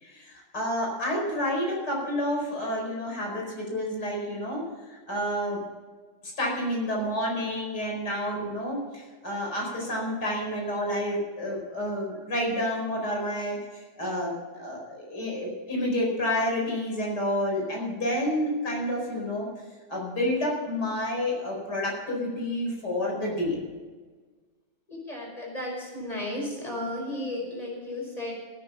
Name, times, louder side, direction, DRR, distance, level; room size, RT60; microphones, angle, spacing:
voice 1, 0.0-5.6 6.2-13.6 14.0-19.5 19.9-23.6, left 1 dB, 60° left, -1 dB, 5.3 m, -29 dB
voice 2, 24.9-28.3, left 1 dB, 20° left, -1 dB, 5.4 m, -34 dB
17.0 x 9.6 x 5.6 m, 1.4 s
omnidirectional pair, 2.0 m